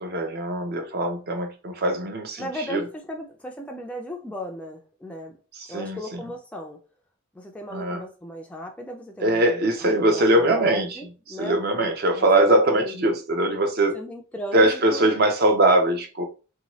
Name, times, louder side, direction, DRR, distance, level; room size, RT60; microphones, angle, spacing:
voice 1, 0.0-2.8 5.7-6.0 7.7-8.0 9.2-11.0 11.4-14.0 14.5-16.2, right 1 dB, 45° right, 0.6 m, -21 dB
voice 2, 2.4-5.4 5.7-6.8 7.3-11.6 12.1-12.9 13.9-15.1, equal, 5° left, 0.4 m, -36 dB
2.7 x 2.3 x 2.9 m
head